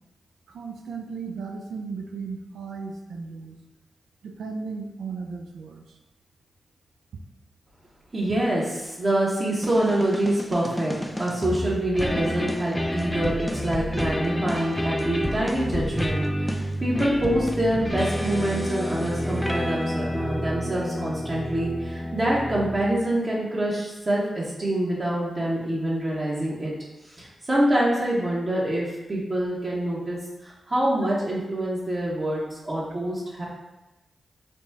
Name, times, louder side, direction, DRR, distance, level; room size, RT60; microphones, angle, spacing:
voice 1, 0.5-3.6 4.2-5.8, right 4 dB, 85° right, 4 dB, 0.4 m, -35 dB
voice 2, 8.1-10.9 11.2-26.7 27.1-33.4, right 1 dB, 45° right, -7 dB, 0.9 m, -26 dB
sound 1, 9.6-23.1, equal, 10° left, 0.4 m, -29 dB
4.0 x 2.1 x 3.4 m, 1.0 s
supercardioid pair, 40°, 0 cm